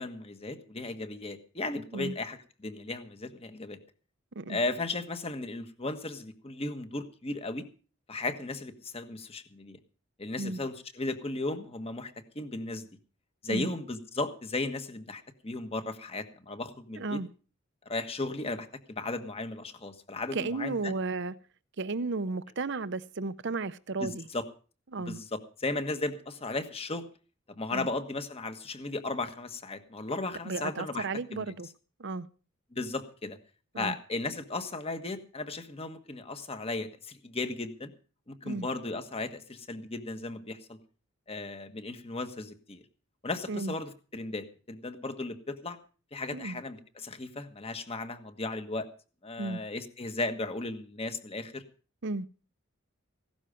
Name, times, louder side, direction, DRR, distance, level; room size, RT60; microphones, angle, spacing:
voice 1, 0.0-3.8 4.5-7.7 8.1-9.8 10.2-12.9 13.4-17.2 17.8-20.9 24.0-24.4 25.1-27.1 27.5-31.1 31.3-31.5 32.7-33.4 33.8-37.9 38.3-40.8 41.3-42.8 43.2-45.8 46.1-48.9 49.2-51.6, left 2 dB, 30° left, 1.5 m, -36 dB
voice 2, 17.0-17.3 20.3-21.3 21.8-24.3 24.9-25.2 27.7-27.9 30.4-31.7 32.0-32.3 33.7-34.0 38.4-38.7 43.5-43.7 46.3-46.6 49.4-49.6 52.0-52.3, right 3 dB, 60° right, 0.7 m, -34 dB
16.5 x 12.5 x 5.0 m
head